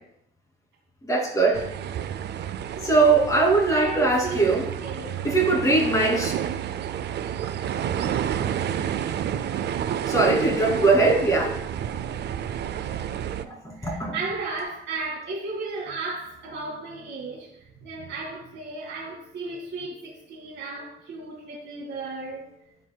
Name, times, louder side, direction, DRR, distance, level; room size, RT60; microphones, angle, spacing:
voice 1, 1.0-1.7 2.8-4.7 5.2-6.3 10.1-11.6 13.6-14.2, right 3 dB, 15° left, 2.5 m, -21 dB
sound 1, 1.5-13.5, right 9 dB, 60° right, 0.4 m, -30 dB
voice 2, 2.8-3.1 3.7-5.4 13.3-22.5, right 3 dB, 75° right, 1.8 m, -35 dB
12.5 x 4.5 x 2.3 m
cardioid pair, 90°, 20 cm